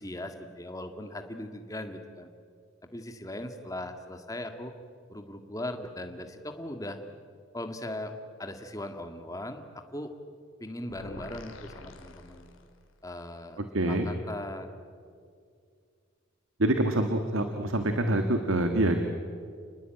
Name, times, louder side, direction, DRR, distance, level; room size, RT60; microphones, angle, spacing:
voice 1, 0.0-2.3 2.9-4.7 5.1-7.0 7.5-8.1 8.4-10.1 10.6-12.5 13.0-13.6 13.9-14.7, left 1 dB, 15° left, 6 dB, 1.8 m, -39 dB
sound 1, 10.9-13.0, left 2 dB, 85° left, 2.6 m, -47 dB
voice 2, 13.7-14.1 16.6-19.0, right 1 dB, 85° right, 6 dB, 1.8 m, -26 dB
30.0 x 20.0 x 9.0 m, 2.3 s
head